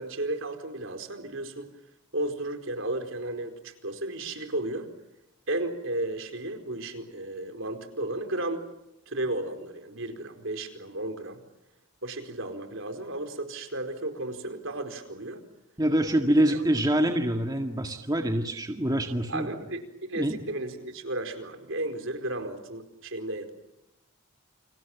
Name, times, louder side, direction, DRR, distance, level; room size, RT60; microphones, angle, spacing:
voice 1, 0.0-1.7 2.1-4.9 5.5-8.6 9.1-11.4 12.0-15.4 16.3-16.4 19.3-23.5, right 1 dB, 60° right, 6 dB, 4.6 m, -34 dB
voice 2, 15.8-19.7 20.2-20.4, right 1 dB, 20° right, 4 dB, 1.9 m, -25 dB
29.5 x 27.0 x 7.3 m, 0.88 s
head